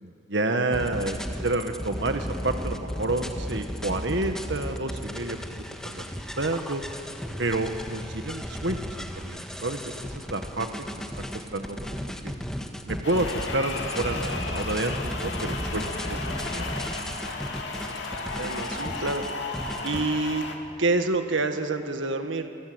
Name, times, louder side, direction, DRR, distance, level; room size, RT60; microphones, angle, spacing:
voice 1, 0.0-6.0 6.4-6.8 7.4-11.0 11.3-12.0 12.2-12.3 12.9-16.6, right 2 dB, 70° right, 6 dB, 1.5 m, -30 dB
sound 1, 0.7-20.0, equal, 5° left, 1.5 m, -35 dB
sound 2, 13.0-20.6, left 3 dB, 70° left, 2.7 m, -34 dB
voice 2, 18.2-19.2 19.8-20.5 20.8-22.5, right 3 dB, 85° right, 7 dB, 1.6 m, -27 dB
29.0 x 24.0 x 8.0 m, 3.0 s
head